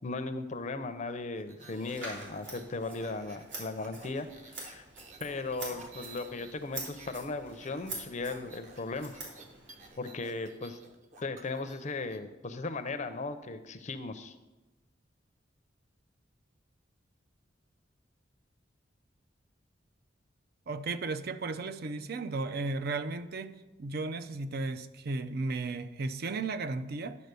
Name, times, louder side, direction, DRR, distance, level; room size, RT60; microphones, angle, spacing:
voice 1, 0.0-4.8 5.2-9.2 10.0-10.8 11.2-14.3, left 3 dB, 40° left, 10 dB, 0.5 m, -37 dB
sound 1, 1.3-7.2 7.5-12.2, right 3 dB, 40° right, 0.9 m, -53 dB
Scissors, 1.9-9.9, right 2 dB, 75° right, 3.4 m, -46 dB
voice 2, 20.7-27.2, right 3 dB, 55° right, 12 dB, 0.5 m, -35 dB
10.5 x 4.2 x 6.7 m, 1.1 s
head